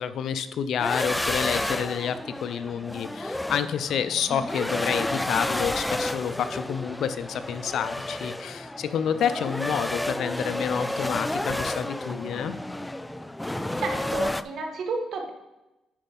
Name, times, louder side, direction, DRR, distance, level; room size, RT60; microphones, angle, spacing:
voice 1, 0.0-12.6, left 8 dB, 70° left, 12 dB, 0.5 m, -29 dB
sound 1, 0.8-14.4, left 1 dB, 10° left, 0.4 m, -31 dB
voice 2, 13.8-15.3, right 3 dB, 65° right, 3 dB, 1.8 m, -31 dB
10.0 x 5.3 x 5.3 m, 0.96 s
cardioid pair, 90°, 0 cm